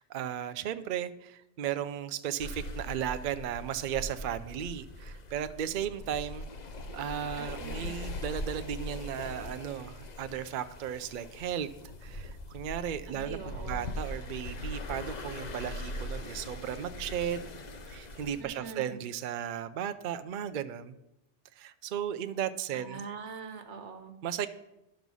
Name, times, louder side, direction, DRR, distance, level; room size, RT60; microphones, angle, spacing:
voice 1, 0.0-6.5 6.9-11.7 12.0-17.5 17.9-21.0 21.6-23.0 24.2-24.5, right 9 dB, 55° right, 11 dB, 0.6 m, -35 dB
sound 1, 2.4-18.4, left 1 dB, 45° left, 0.8 m, -41 dB
voice 2, 7.4-7.9 13.1-14.0 18.4-19.0 22.7-24.2, right 6 dB, 85° right, 7 dB, 1.4 m, -43 dB
11.5 x 5.3 x 6.2 m, 0.88 s
omnidirectional pair, 1.2 m